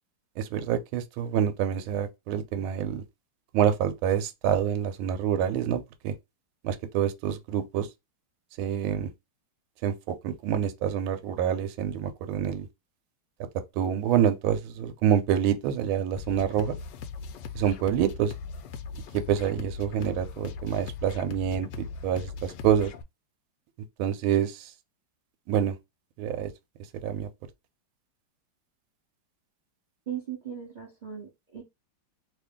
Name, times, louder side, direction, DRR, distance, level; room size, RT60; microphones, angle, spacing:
voice 1, 0.4-3.0 3.5-6.1 6.6-7.9 8.6-9.1 9.8-12.7 13.8-16.8 17.5-18.3 19.1-22.9 24.0-24.7 25.5-25.8 26.2-26.5 27.0-27.3, right 9 dB, 75° right, 1.4 m, -27 dB
sound 1, 16.2-23.0, left 4 dB, 80° left, 0.9 m, -39 dB
voice 2, 30.1-31.6, right 9 dB, 60° right, 0.4 m, -38 dB
3.2 x 2.6 x 3.5 m
omnidirectional pair, 2.4 m